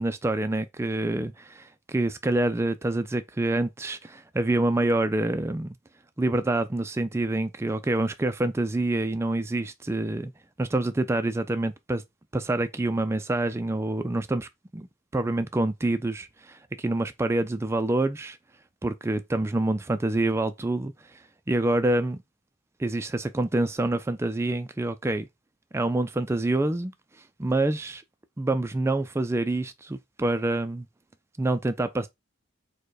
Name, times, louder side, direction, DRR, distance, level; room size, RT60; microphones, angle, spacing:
voice 1, 0.0-5.8 6.2-10.3 10.6-12.0 12.3-14.9 15.1-18.4 18.8-22.2 22.8-25.3 25.7-26.9 27.2-28.0 28.4-30.9 31.4-32.1, right 2 dB, 15° right, 0.3 m, -27 dB
4.5 x 2.2 x 4.6 m
head